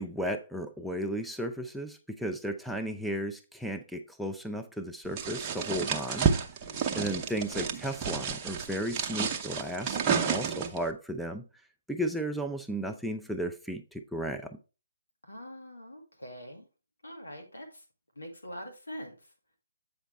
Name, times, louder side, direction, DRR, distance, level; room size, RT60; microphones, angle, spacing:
voice 1, 0.0-6.3 6.9-11.4 11.9-14.6, right 1 dB, ahead, 3 dB, 0.5 m, -34 dB
sound 1, 5.2-10.9, right 6 dB, 25° right, 0.8 m, -31 dB
voice 2, 6.6-7.0 15.2-16.7 17.0-17.8 18.2-19.3, equal, 90° left, 4 dB, 2.1 m, -44 dB
8.1 x 5.1 x 3.4 m, 0.33 s
figure-of-eight pair, 145°, 0 cm